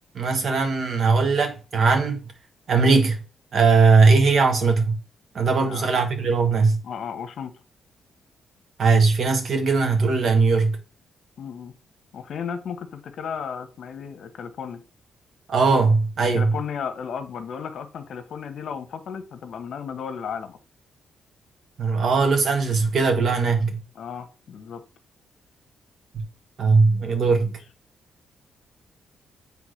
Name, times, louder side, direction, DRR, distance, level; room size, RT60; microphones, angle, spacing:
voice 1, 0.1-2.2 2.7-3.2 3.5-5.0 5.3-6.8 8.8-10.8 15.5-16.5 21.8-23.8 26.1-26.2 26.6-27.6, right 4 dB, 50° right, 1.5 m, -19 dB
voice 2, 5.6-5.9 6.8-7.5 11.4-11.7 12.1-14.8 16.2-20.6 23.9-24.8 27.4-27.5, left 7 dB, 65° left, 1.1 m, -34 dB
8.4 x 3.5 x 6.4 m
cardioid pair, 135°, 0 cm